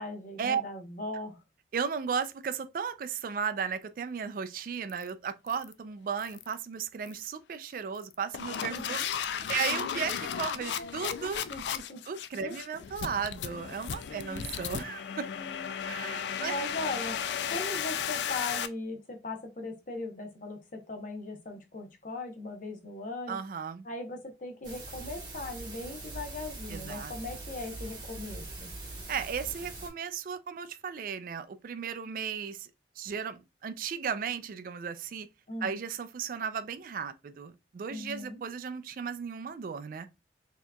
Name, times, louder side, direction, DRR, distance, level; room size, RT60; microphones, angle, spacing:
voice 1, 0.0-1.4 8.7-8.8 9.6-9.9 11.5-12.0 12.4-12.6 14.1-14.5 15.4-15.7 16.4-17.2 17.5-23.4 23.8-28.7 35.5-35.8 37.9-38.4, left 2 dB, 50° left, 0.8 m, -39 dB
voice 2, 1.7-11.5 12.1-15.3 15.8-16.5 23.3-23.9 26.7-27.1 29.1-32.7 33.0-35.3 35.6-40.1, right 6 dB, 50° right, 0.3 m, -35 dB
sound 1, 4.9-5.1 5.5-5.7 6.2-6.5 7.1-7.3 7.9-18.7, left 8 dB, 80° left, 0.3 m, -35 dB
sound 2, 24.6-29.9, right 2 dB, 25° right, 1.3 m, -42 dB
4.4 x 2.9 x 2.2 m
head